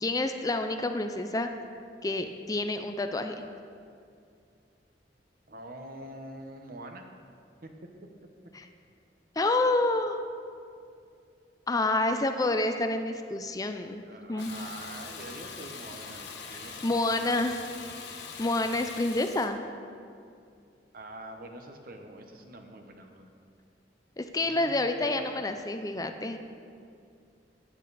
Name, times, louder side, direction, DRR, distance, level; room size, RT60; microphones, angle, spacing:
voice 1, 0.0-1.5 2.0-3.4 8.5-8.7 9.4-10.2 11.7-14.5 16.8-17.6 18.4-19.6 24.2-26.4, left 2 dB, 20° left, 7 dB, 0.5 m, -28 dB
voice 2, 5.5-7.0 7.6-7.7 14.0-17.3 20.9-23.3 24.4-25.4, right 1 dB, 55° right, 5 dB, 1.1 m, -45 dB
Water tap faucet / Bathtub (filling or washing), 14.4-19.5, left 5 dB, 85° left, 1.4 m, -42 dB
15.5 x 8.4 x 4.1 m, 2.4 s
head